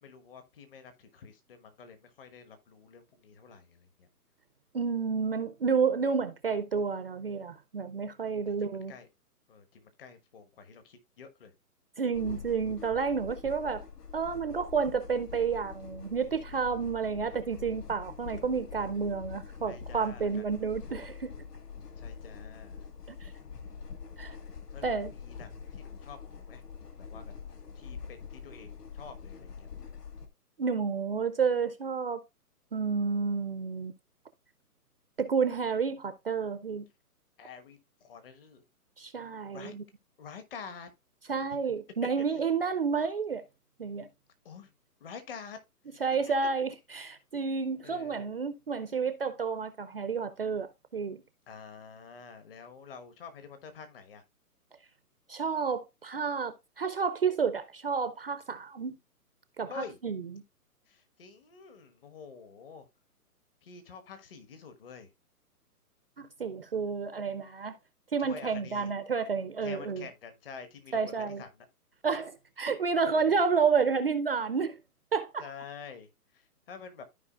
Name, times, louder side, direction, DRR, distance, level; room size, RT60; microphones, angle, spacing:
voice 1, 0.0-4.1 8.3-8.5 8.9-9.1 9.5-11.5 19.6-20.9 22.0-22.8 24.7-25.5 25.8-26.6 27.0-27.3 27.7-29.7 37.4-38.6 39.5-39.7 40.2-40.9 44.4-44.7 45.0-45.6 47.8-48.2 51.5-54.2 59.7-60.0 60.9-62.8 63.6-65.1 68.2-68.9 69.6-71.0 71.4-71.5 73.1-73.4 75.4-76.1 76.3-77.0, left 6 dB, 35° left, 1.2 m, -48 dB
voice 2, 4.7-8.9 12.0-13.9 14.1-21.3 23.1-23.3 24.2-24.4 24.8-25.1 30.6-32.2 32.7-33.9 35.2-36.9 39.0-39.8 41.3-43.4 43.8-44.1 46.0-51.2 55.3-59.0 59.6-60.4 66.2-67.8 68.1-70.1 70.9-71.4 72.0-74.8 75.1-75.5, right 5 dB, 40° right, 0.5 m, -30 dB
sound 1, 12.1-30.3, left 6 dB, 85° left, 1.5 m, -45 dB
13.5 x 4.7 x 2.3 m
hypercardioid pair, 155°, 47 cm